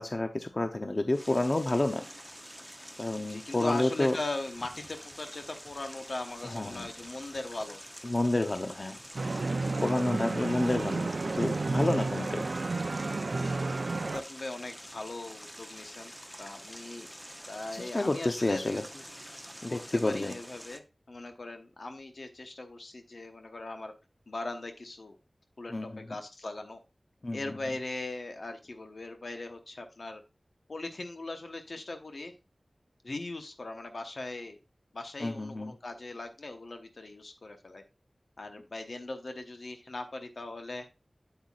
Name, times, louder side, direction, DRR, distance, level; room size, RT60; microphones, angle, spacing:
voice 1, 0.0-2.0 3.0-4.2 6.4-6.9 8.0-9.0 9.8-11.1 11.3-12.5 17.7-18.8 19.6-20.3 25.7-26.0 27.2-27.4 35.2-35.7, left 2 dB, 50° left, 7 dB, 0.7 m, -29 dB
sound 1, 1.1-20.8, equal, ahead, 0.7 m, -47 dB
voice 2, 3.2-7.8 9.6-9.8 10.5-10.6 12.0-12.3 13.3-13.7 14.0-16.1 16.4-17.1 17.5-19.0 19.7-23.9 24.3-25.2 25.6-26.8 27.3-30.2 30.7-32.3 33.0-34.6 34.9-37.8 38.4-40.9, left 2 dB, 75° left, 6 dB, 1.0 m, -40 dB
sound 2, 9.2-14.2, right 3 dB, 75° right, 0.4 m, -31 dB
8.1 x 7.9 x 2.4 m, 0.27 s
wide cardioid pair, 50°, 0 cm